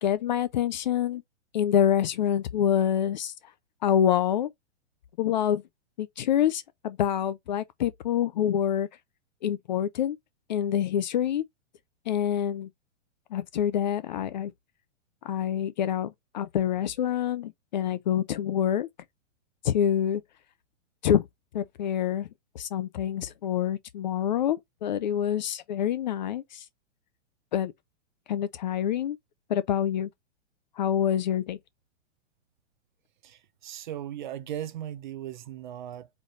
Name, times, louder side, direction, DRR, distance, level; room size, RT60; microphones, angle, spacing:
voice 1, 0.0-1.2 1.5-3.3 3.8-4.5 5.2-5.6 6.0-8.9 9.4-10.2 10.5-11.4 12.1-12.7 13.3-14.5 15.2-18.9 19.6-20.2 21.0-21.3 21.5-22.3 22.6-26.6 27.5-27.7 28.3-29.2 29.5-30.1 30.8-31.6, left 10 dB, 40° left, 0.4 m, -26 dB
voice 2, 33.2-36.1, right 11 dB, 40° right, 0.4 m, -38 dB
4.0 x 3.2 x 3.0 m
hypercardioid pair, 150°, 37 cm